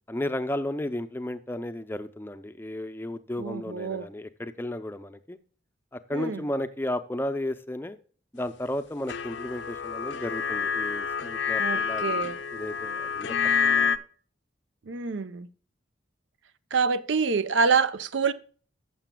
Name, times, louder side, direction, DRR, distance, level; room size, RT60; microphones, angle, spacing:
voice 1, 0.1-5.4 5.9-8.0 8.3-13.4 13.6-13.9, left 1 dB, 10° left, 0.5 m, -33 dB
voice 2, 3.4-4.1 6.1-6.4 11.6-12.4 14.9-15.5 16.7-18.3, right 5 dB, 75° right, 0.6 m, -26 dB
sound 1, 9.1-14.0, left 6 dB, 70° left, 0.6 m, -28 dB
15.0 x 6.9 x 2.2 m
head